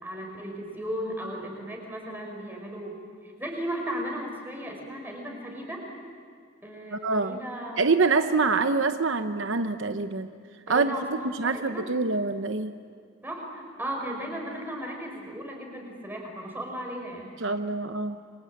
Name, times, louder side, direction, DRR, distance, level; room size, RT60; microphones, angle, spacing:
voice 1, 0.0-3.0 3.2-5.8 6.6-7.8 10.7-11.9 13.2-17.3, equal, 10° right, 1 dB, 5.3 m, -36 dB
voice 2, 6.9-7.4 7.8-10.3 10.7-10.9 11.2-12.7 17.4-18.2, right 4 dB, 70° right, 8 dB, 0.9 m, -25 dB
28.5 x 24.0 x 8.5 m, 2.2 s
head